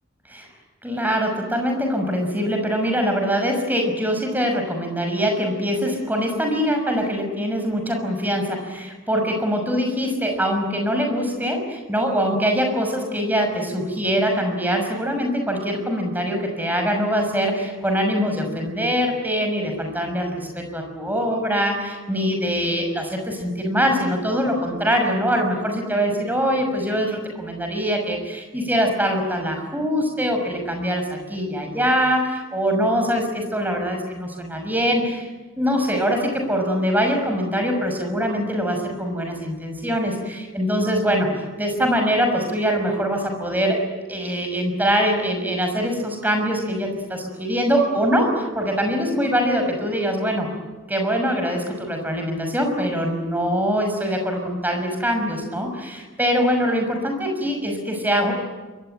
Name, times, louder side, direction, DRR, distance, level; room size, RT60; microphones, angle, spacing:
voice 1, 0.8-35.3 35.6-41.3 41.6-43.8 44.1-50.5 50.9-58.4, equal, 10° right, 4 dB, 5.9 m, -23 dB
27.5 x 23.5 x 9.1 m, 1.2 s
head